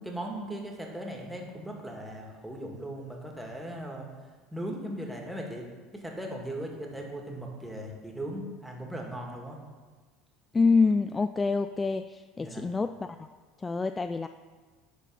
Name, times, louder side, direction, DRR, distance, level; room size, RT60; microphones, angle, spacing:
voice 1, 0.1-4.1 4.5-5.7 5.9-9.6 12.4-12.6, right 1 dB, 5° right, 0 dB, 1.9 m, -38 dB
voice 2, 10.5-13.2 13.6-14.3, left 4 dB, 20° left, 9 dB, 0.3 m, -26 dB
10.5 x 4.0 x 5.5 m, 1.4 s
hypercardioid pair, 75°, 0 cm